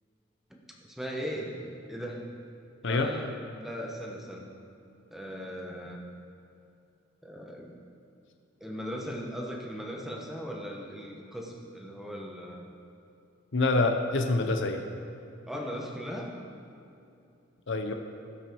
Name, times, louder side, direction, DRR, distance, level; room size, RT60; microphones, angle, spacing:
voice 1, 0.8-1.6 1.9-2.3 2.8-4.5 5.1-6.1 7.2-7.7 8.6-12.6 15.5-16.3, equal, ahead, -1 dB, 1.2 m, -38 dB
voice 2, 13.5-14.8 17.7-17.9, left 2 dB, 65° left, 5 dB, 0.8 m, -26 dB
18.0 x 6.1 x 4.7 m, 2.6 s
head